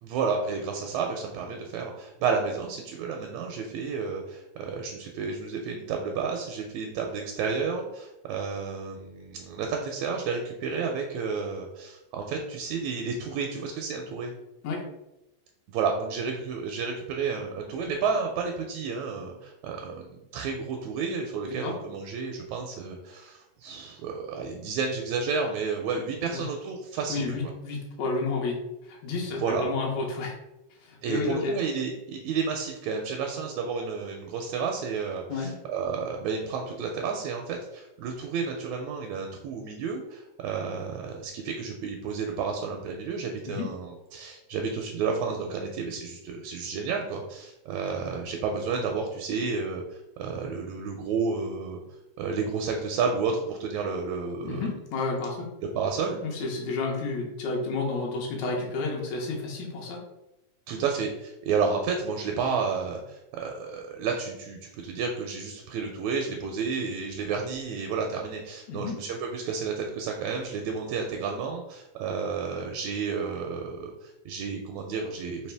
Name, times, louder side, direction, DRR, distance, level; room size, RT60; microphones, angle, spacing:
voice 1, 0.0-14.3 15.7-27.3 29.4-29.7 31.0-51.8 52.2-54.7 55.7-56.2 60.7-75.5, right 5 dB, 80° right, 2 dB, 1.7 m, -31 dB
voice 2, 27.1-30.4 30.8-31.6 35.3-35.5 43.5-43.7 54.4-55.5 56.2-60.0 68.7-69.0, left 3 dB, 75° left, -2 dB, 2.0 m, -31 dB
4.8 x 2.8 x 3.3 m, 0.93 s
omnidirectional pair, 3.4 m